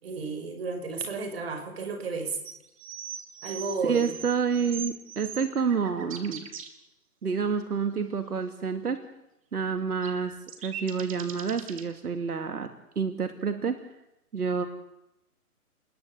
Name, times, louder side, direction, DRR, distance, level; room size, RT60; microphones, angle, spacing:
voice 1, 0.0-2.4 3.4-4.2, right 4 dB, 40° right, 7 dB, 5.7 m, -32 dB
sound 1, 2.4-6.7 10.0-11.8, right 8 dB, 25° right, 1.9 m, -40 dB
voice 2, 3.8-6.5 7.2-9.0 9.5-10.4 10.6-12.7 13.0-13.8 14.3-14.7, right 6 dB, 80° right, 7 dB, 2.6 m, -28 dB
28.0 x 21.0 x 8.3 m, 0.89 s
hypercardioid pair, 170°, 45 cm